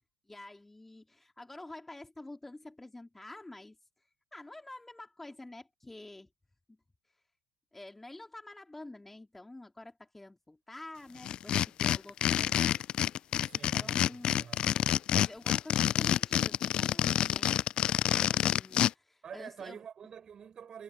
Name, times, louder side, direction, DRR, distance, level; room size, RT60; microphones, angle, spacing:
voice 1, 0.3-3.8 4.3-6.3 6.7-6.8 7.7-13.1 13.5-14.3 15.1-17.7 18.0-19.8, left 2 dB, 10° left, 4.6 m, -48 dB
sound 1, 11.2-18.9, left 11 dB, 45° left, 0.9 m, -28 dB
voice 2, 13.4-14.6 19.2-20.8, right 7 dB, 35° right, 7.7 m, -47 dB
figure-of-eight pair, 60°, 2 cm